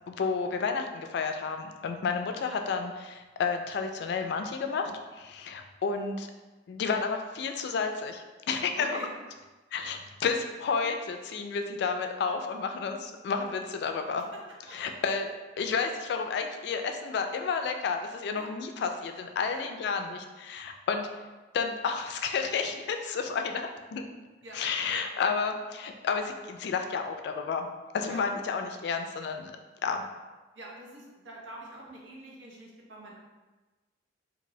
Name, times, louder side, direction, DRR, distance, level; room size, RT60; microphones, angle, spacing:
voice 1, 0.1-6.3 6.7-8.9 9.7-14.2 14.7-15.3 15.6-21.1 21.5-24.0 24.5-27.7 27.9-29.5 29.8-30.0, left 5 dB, 65° left, 5 dB, 0.3 m, -31 dB
voice 2, 8.8-9.1 14.2-14.4 14.7-14.8 18.3-18.5 19.5-19.7 24.4-24.6 28.1-28.2 30.5-33.1, right 1 dB, 85° right, -3 dB, 0.7 m, -45 dB
2.7 x 2.6 x 3.0 m, 1.2 s
head